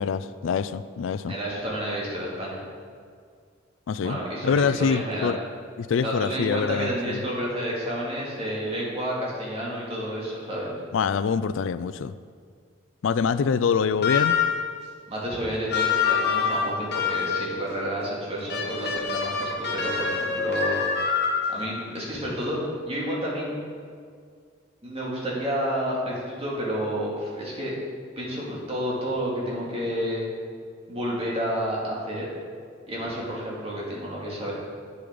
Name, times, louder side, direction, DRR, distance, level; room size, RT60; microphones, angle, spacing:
voice 1, 0.0-1.3 3.9-4.2 4.4-5.4 5.8-7.2 10.9-12.2 13.0-14.4, left 6 dB, 75° left, 15 dB, 0.4 m, -25 dB
voice 2, 1.3-2.6 4.0-5.3 6.0-10.7 15.1-20.8 21.5-22.6 22.9-23.6 24.8-27.7 28.2-30.3 30.9-32.2 32.9-34.5, equal, 30° right, -5 dB, 2.4 m, -30 dB
sound 1, 14.0-14.7 15.7-17.5 18.5-21.7, left 6 dB, 55° left, 1.3 m, -25 dB
9.4 x 6.9 x 5.1 m, 2.1 s
head